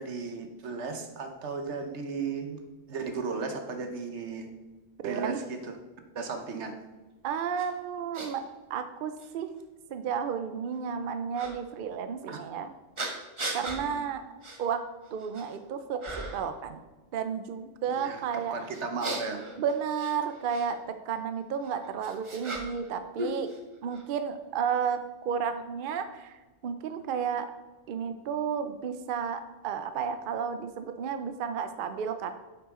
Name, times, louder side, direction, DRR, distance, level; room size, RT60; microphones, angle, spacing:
voice 1, 0.0-4.5 5.0-5.8 6.1-6.7 12.3-12.4 13.8-14.1 17.9-19.4, right 4 dB, 90° right, 6 dB, 1.2 m, -35 dB
voice 2, 5.0-5.4 7.2-9.5 9.9-12.7 13.5-14.2 14.6-14.8 15.1-16.8 17.1-18.5 19.6-23.5 23.8-27.5 27.9-32.4, right 7 dB, 60° right, 9 dB, 0.7 m, -32 dB
sound 1, 7.6-7.7 8.1-8.3 9.2-9.3 11.3-11.5 13.0-13.8 14.4-14.6 15.0-15.6 16.0-16.5 18.7-20.7 21.6-22.9 23.2-24.0, right 1 dB, 30° right, 1.0 m, -37 dB
8.7 x 6.0 x 3.7 m, 1.2 s
omnidirectional pair, 1.1 m